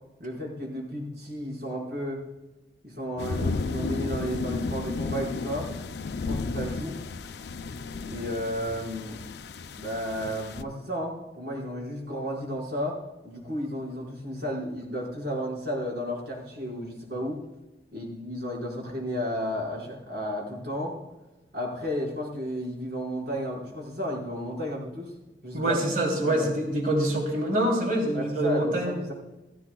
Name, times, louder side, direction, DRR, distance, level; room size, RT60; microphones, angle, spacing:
voice 1, 0.2-2.2 2.8-5.7 6.3-7.0 8.0-9.2 9.8-13.0 13.2-17.4 17.9-21.0 21.5-25.1 25.4-25.8 26.2-26.5 28.1-29.1, equal, 70° right, -4 dB, 4.9 m, -33 dB
sound 1, 3.2-10.6, left 3 dB, 70° left, 0.5 m, -33 dB
voice 2, 25.5-28.9, right 1 dB, 50° right, 1 dB, 3.0 m, -25 dB
16.0 x 15.5 x 2.3 m, 1.1 s
head